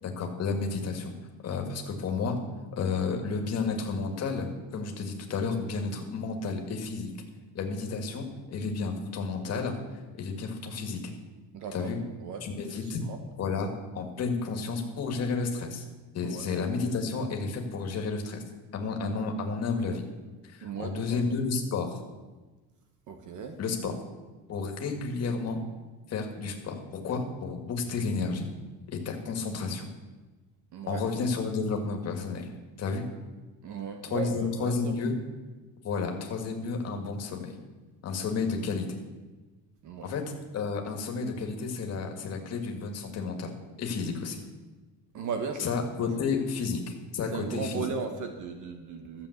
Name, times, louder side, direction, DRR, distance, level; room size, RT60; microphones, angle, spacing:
voice 1, 0.0-1.1 1.4-2.4 2.8-7.1 7.5-9.8 10.1-11.1 11.7-12.0 12.4-13.0 13.4-13.7 13.9-15.8 16.1-18.4 18.7-20.1 20.4-22.0 23.6-23.9 24.5-25.6 26.1-28.5 28.9-29.9 30.9-32.5 32.8-33.1 34.1-35.2 35.8-37.6 38.0-39.0 40.0-43.5 43.8-44.4 45.6-47.9, left 4 dB, 40° left, 3 dB, 1.9 m, -31 dB
voice 2, 11.5-11.9 12.2-12.4 13.0-13.2 16.2-16.4 20.6-21.3 23.1-23.6 30.7-31.0 33.6-34.9 39.8-40.1 45.1-45.7 46.0-46.1 47.3-49.3, right 5 dB, 55° right, 6 dB, 1.2 m, -36 dB
13.0 x 7.3 x 8.0 m, 1.2 s
cardioid pair, 175°, 37 cm